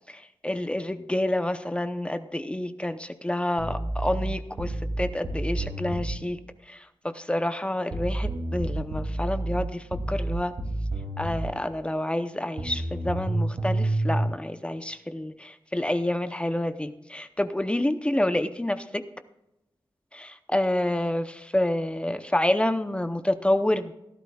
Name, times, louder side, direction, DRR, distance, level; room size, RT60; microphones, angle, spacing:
voice 1, 0.1-6.4 6.7-10.5 11.2-19.0 20.1-23.9, left 1 dB, 10° left, 10 dB, 0.7 m, -28 dB
sound 1, 3.6-6.2 7.9-11.5 12.6-14.2, right 2 dB, 80° right, 2.7 m, -29 dB
17.5 x 12.0 x 2.3 m, 0.89 s
wide cardioid pair, 115°, 9 cm